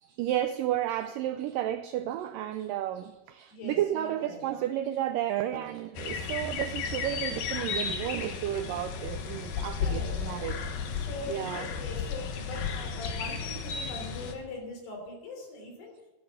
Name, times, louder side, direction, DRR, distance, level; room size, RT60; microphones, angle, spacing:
voice 1, 0.0-10.6 11.3-11.7, right 12 dB, 85° right, 11 dB, 1.9 m, -32 dB
voice 2, 3.5-4.4 9.8-15.9, left 2 dB, 85° left, 3 dB, 5.6 m, -42 dB
sound 1, 6.0-14.3, left 6 dB, 65° left, 2.9 m, -34 dB
14.0 x 11.0 x 6.8 m, 1.1 s
omnidirectional pair, 4.6 m